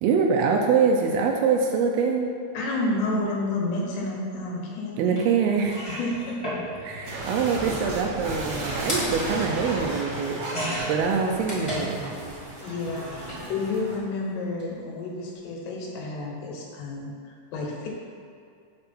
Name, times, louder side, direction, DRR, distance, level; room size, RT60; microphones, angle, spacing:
voice 1, 0.0-2.3 5.0-5.8 6.8-10.4 10.8-12.0, right 5 dB, 80° right, 2 dB, 2.4 m, -24 dB
voice 2, 2.6-5.3 5.9-6.4 6.8-7.0 11.0-11.2 12.6-17.9, left 2 dB, 85° left, -2 dB, 3.4 m, -30 dB
sound 1, 5.1-5.2 5.6-12.3 12.6-13.4 14.4-14.6 14.9-15.0, equal, 40° left, 0.4 m, -35 dB
sound 2, 7.1-14.0, right 2 dB, 60° right, 3.1 m, -34 dB
8.9 x 4.4 x 5.9 m, 2.3 s
omnidirectional pair, 4.7 m